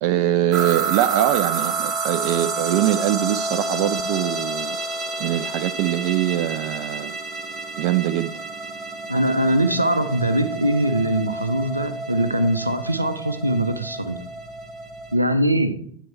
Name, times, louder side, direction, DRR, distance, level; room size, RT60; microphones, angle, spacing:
voice 1, 0.0-4.8 5.2-7.1 7.8-8.4, right 13 dB, 45° right, 11 dB, 0.4 m, -23 dB
sound 1, 0.5-15.2, right 3 dB, 25° right, 1.2 m, -29 dB
voice 2, 9.1-14.2 15.1-15.7, right 1 dB, 85° right, 10 dB, 0.7 m, -22 dB
9.3 x 4.5 x 4.4 m, 0.62 s
figure-of-eight pair, 90°, 0 cm